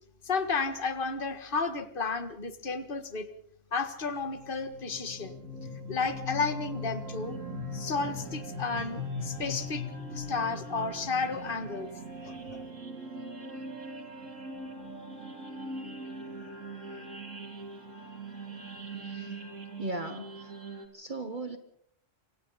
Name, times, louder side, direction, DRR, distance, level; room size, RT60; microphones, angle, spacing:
voice 1, 0.2-3.3 3.7-5.4 5.9-7.4 7.7-11.9 12.2-12.6, left 4 dB, 45° left, 8 dB, 1.9 m, -32 dB
sound 1, 4.1-20.9, equal, 85° right, 3.3 m, -40 dB
voice 2, 18.9-19.4 19.8-20.5 20.9-21.6, right 2 dB, 40° right, 7 dB, 1.5 m, -38 dB
28.0 x 24.5 x 4.2 m, 0.67 s
omnidirectional pair, 1.3 m